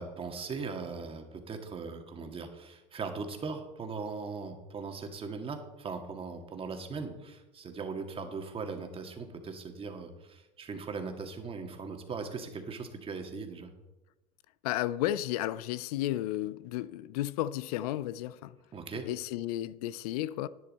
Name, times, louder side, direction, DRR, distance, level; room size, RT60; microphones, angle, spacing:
voice 1, 0.0-13.7 18.7-19.1, right 4 dB, 30° right, 1.9 m, -39 dB
voice 2, 14.6-18.6 19.1-20.5, left 14 dB, 80° left, 0.5 m, -33 dB
11.0 x 10.0 x 4.2 m
supercardioid pair, 100°, 19 cm